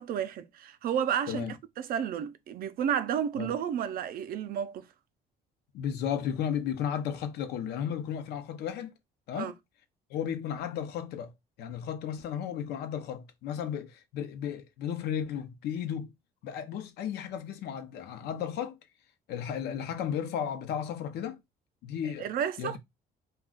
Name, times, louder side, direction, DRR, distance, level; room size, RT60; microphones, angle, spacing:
voice 1, 0.0-4.9 9.4-9.5 22.2-22.8, right 9 dB, 60° right, 0.5 m, -31 dB
voice 2, 5.7-8.9 9.3-9.5 10.1-11.3 11.6-16.1 16.4-18.8 19.3-21.4 21.8-22.3 22.6-22.8, left 8 dB, 75° left, 0.7 m, -34 dB
2.4 x 2.3 x 3.7 m
cardioid pair, 110°, 17 cm